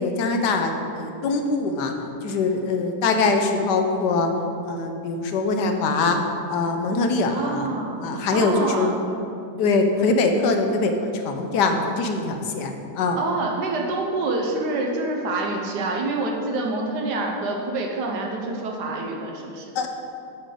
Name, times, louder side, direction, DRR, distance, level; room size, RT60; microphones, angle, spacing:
voice 1, 0.0-1.9 2.2-4.3 4.6-6.2 6.5-7.7 8.0-8.9 9.6-13.2 19.7-19.9, left 3 dB, 85° left, 5 dB, 1.3 m, -23 dB
voice 2, 7.3-8.1 8.3-8.9 13.2-19.7, right 2 dB, 75° right, 0 dB, 1.4 m, -27 dB
8.6 x 3.8 x 6.7 m, 2.6 s
omnidirectional pair, 1.8 m